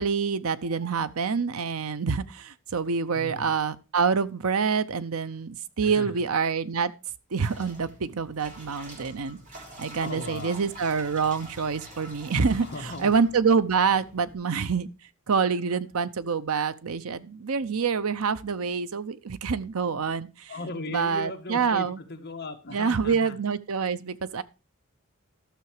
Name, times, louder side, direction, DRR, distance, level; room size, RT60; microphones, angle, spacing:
voice 1, 0.0-6.9 7.3-12.7 13.0-14.9 15.3-20.5 20.9-22.0 22.7-24.4, right 5 dB, 75° right, 0.7 m, -26 dB
voice 2, 3.1-3.5 5.8-6.1 10.0-10.6 12.5-13.1 20.5-23.4, left 2 dB, 45° left, 1.7 m, -37 dB
sound 1, 7.4-14.3, right 1 dB, 35° right, 2.9 m, -46 dB
12.5 x 6.9 x 4.8 m
head